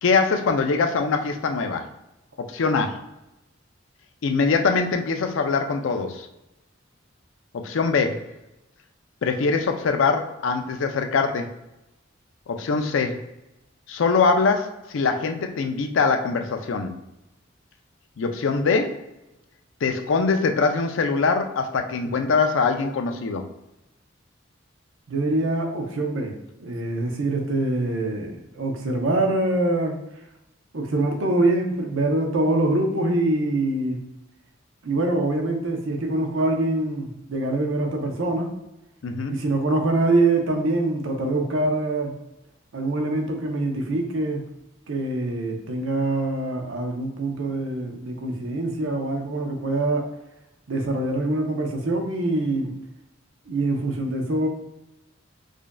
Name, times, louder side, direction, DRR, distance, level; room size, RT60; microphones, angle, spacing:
voice 1, 0.0-1.9 2.4-3.0 4.2-6.3 7.5-8.3 9.2-11.5 12.5-13.2 13.9-17.0 18.2-19.0 19.8-23.4 39.0-39.4, left 4 dB, 75° left, 6 dB, 0.4 m, -23 dB
voice 2, 25.1-30.0 30.7-34.0 34.8-38.5 39.3-42.1 42.7-44.4 44.9-50.1 50.7-52.7 53.5-54.5, right 2 dB, 80° right, 2 dB, 0.7 m, -24 dB
4.9 x 2.5 x 2.2 m, 0.93 s
head